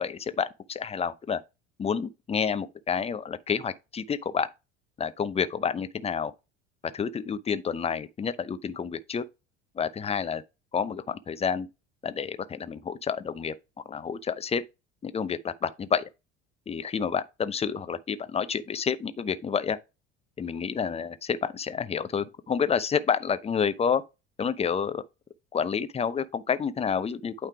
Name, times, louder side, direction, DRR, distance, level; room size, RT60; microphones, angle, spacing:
voice 1, 0.0-1.4 1.8-4.5 5.0-6.3 6.9-9.2 9.8-10.4 10.7-11.7 12.0-13.5 13.9-14.6 15.0-16.1 16.7-19.8 20.4-24.0 24.4-25.0 25.5-27.5, left 6 dB, 20° left, 0.6 m, -29 dB
8.9 x 3.3 x 4.7 m
figure-of-eight pair, 70°, 35 cm